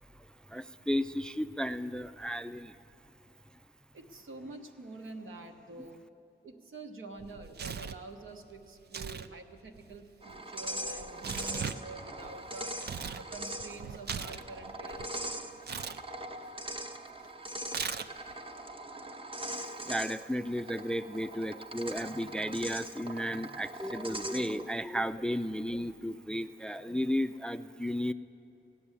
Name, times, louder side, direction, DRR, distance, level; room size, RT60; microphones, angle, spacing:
voice 1, 0.2-2.8 19.8-28.1, equal, 5° left, 11 dB, 0.3 m, -34 dB
voice 2, 3.9-6.0 6.4-15.3, right 3 dB, 85° right, 3 dB, 1.1 m, -47 dB
Tearing, 7.2-8.0 8.8-9.3 9.6-13.2 13.6-15.1 15.6-16.0 17.7-18.3, right 6 dB, 55° right, 0.5 m, -39 dB
sound 1, 10.2-24.7, right 1 dB, 25° right, 0.8 m, -41 dB
15.5 x 6.9 x 9.8 m, 2.7 s
cardioid pair, 70°, 20 cm